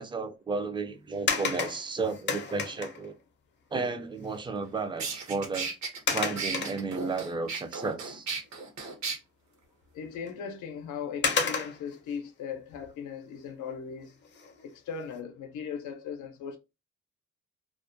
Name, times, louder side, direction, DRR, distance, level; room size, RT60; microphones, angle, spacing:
voice 1, 0.0-3.2 3.7-5.7 6.1-8.3, right 4 dB, 15° right, 0.4 m, -33 dB
sound 1, 1.3-3.1 4.3-4.4 4.8-5.0 6.1-7.2 7.8-7.9 10.3-10.4 11.2-12.0 14.2-14.6 15.1-15.2, left 5 dB, 40° left, 0.5 m, -31 dB
sound 2, 4.6-4.7 5.0-9.2, right 4 dB, 65° right, 0.8 m, -35 dB
voice 2, 9.9-14.1 14.6-16.6, left 6 dB, 80° left, 0.6 m, -38 dB
2.3 x 2.1 x 2.5 m
cardioid pair, 90°, 30 cm